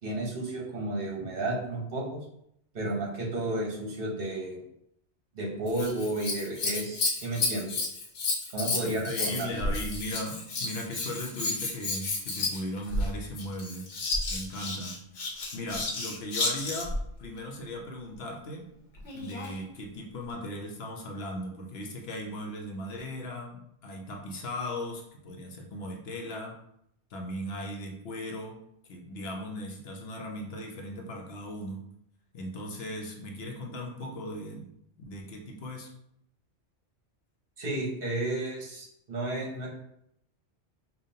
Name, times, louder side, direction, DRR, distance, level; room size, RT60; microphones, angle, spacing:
voice 1, 0.0-2.2 2.7-4.6 5.3-7.9 8.5-9.6 37.6-39.8, right 1 dB, 55° right, -2 dB, 1.2 m, -32 dB
Scissors, 5.7-17.0 19.0-19.6 20.3-20.4, left 2 dB, 85° left, 1.1 m, -32 dB
voice 2, 8.8-13.9 14.3-18.6 19.1-26.6 27.1-28.6 28.9-31.9 32.3-34.7 35.0-35.9, left 1 dB, 65° left, 1 dB, 0.9 m, -38 dB
5.1 x 2.4 x 2.7 m, 0.74 s
omnidirectional pair, 1.2 m